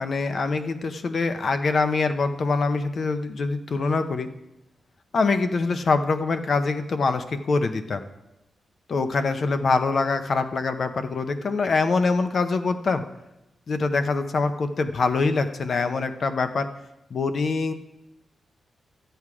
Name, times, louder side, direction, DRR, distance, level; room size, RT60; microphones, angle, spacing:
voice 1, 0.0-4.3 5.1-8.0 8.9-13.0 13.7-16.7 17.1-17.7, left 4 dB, 50° left, 9 dB, 0.7 m, -24 dB
12.0 x 7.9 x 4.9 m, 0.96 s
wide cardioid pair, 130°, 0 cm